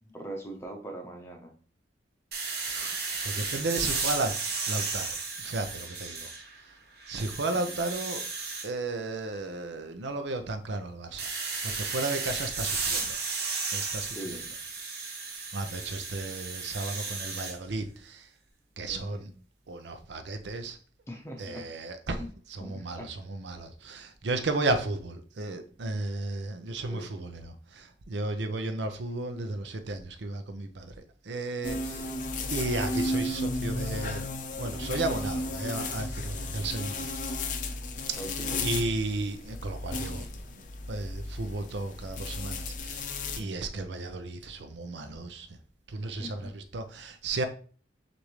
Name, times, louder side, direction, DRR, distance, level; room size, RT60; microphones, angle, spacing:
voice 1, 0.0-1.5 7.5-7.9 14.2-14.5 18.8-19.3 21.1-21.7 22.2-22.3 22.6-23.1 26.9-27.1 31.6-32.1 38.2-38.7 43.4-43.6 46.1-46.5, right 1 dB, 15° left, 0.7 m, -42 dB
sound 1, 2.3-6.6 7.0-8.7 11.2-17.5, right 4 dB, 55° right, 1.0 m, -34 dB
voice 2, 2.7-4.4 4.7-6.3 7.1-8.2 8.6-11.3 11.6-13.2 13.7-14.1 15.5-18.3 18.8-19.3 19.7-20.8 21.4-22.2 22.5-30.9 31.2-32.1 32.5-34.3 34.6-37.1 38.1-38.2 38.6-40.6 40.9-43.1 43.4-45.5 45.9-47.5, right 2 dB, 75° right, 0.6 m, -34 dB
sound 2, 31.6-43.4, left 2 dB, 45° left, 0.5 m, -34 dB
6.4 x 2.6 x 3.1 m
head